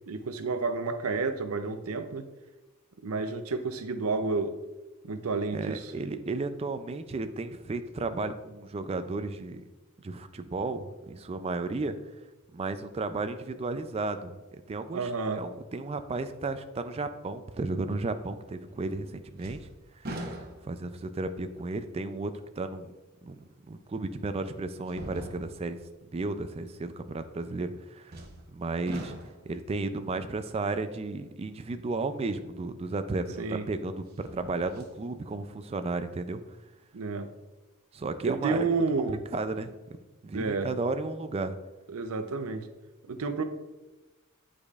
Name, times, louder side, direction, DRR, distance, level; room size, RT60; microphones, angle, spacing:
voice 1, 0.1-2.3 3.0-4.6 5.0-5.9 14.9-15.4 33.4-33.6 36.9-37.3 38.2-39.2 40.3-40.7 41.9-42.7 43.1-43.4, right 4 dB, 75° right, 9 dB, 0.6 m, -30 dB
voice 2, 5.5-9.6 10.0-12.0 12.5-20.4 20.6-22.9 23.2-28.3 28.5-29.1 29.5-36.6 37.9-38.9 39.3-40.0 40.2-41.6, right 3 dB, 25° right, 10 dB, 0.3 m, -34 dB
sound 1, 18.7-19.1 19.4-20.9 21.6-21.7 23.5-23.6 24.9-25.8 28.1-28.5 28.9-29.6 32.6-32.7 34.1-35.0 35.4-35.5, right 1 dB, 45° right, 0.9 m, -42 dB
8.5 x 5.0 x 2.4 m, 1.1 s
head